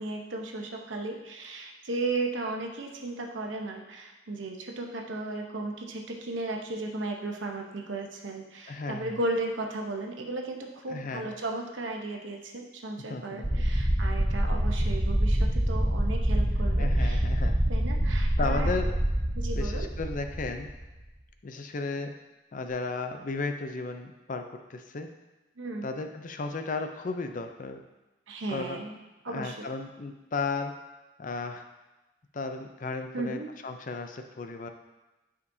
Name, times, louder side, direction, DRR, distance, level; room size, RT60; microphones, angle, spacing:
voice 1, 0.0-17.2 17.7-18.8 19.4-19.9 25.6-25.9 28.3-29.0 29.2-29.6 33.1-33.5, right 2 dB, 90° right, 2 dB, 0.9 m, -35 dB
voice 2, 8.7-9.2 10.9-11.3 13.1-13.6 14.5-14.7 16.8-17.6 18.4-18.9 19.5-20.7 21.4-22.1 22.5-25.1 25.8-27.8 28.5-28.8 29.3-30.7 31.2-31.6 32.3-34.7, left 3 dB, 45° left, 6 dB, 0.5 m, -34 dB
sound 1, 13.4-21.0, equal, 15° right, 0.4 m, -26 dB
9.6 x 5.1 x 2.7 m, 1.1 s
head